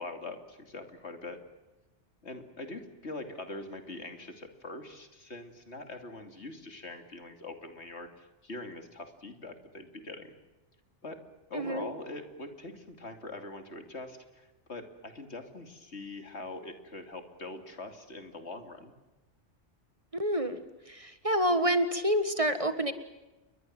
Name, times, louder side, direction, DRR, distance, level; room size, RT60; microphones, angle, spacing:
voice 1, 0.0-1.4 2.2-10.3 11.0-11.2 11.5-18.9, left 2 dB, 70° left, 6 dB, 3.0 m, -43 dB
voice 2, 11.5-11.9 20.2-20.6 20.9-22.9, equal, 30° right, 10 dB, 1.6 m, -28 dB
29.5 x 23.0 x 7.7 m, 1.1 s
omnidirectional pair, 1.2 m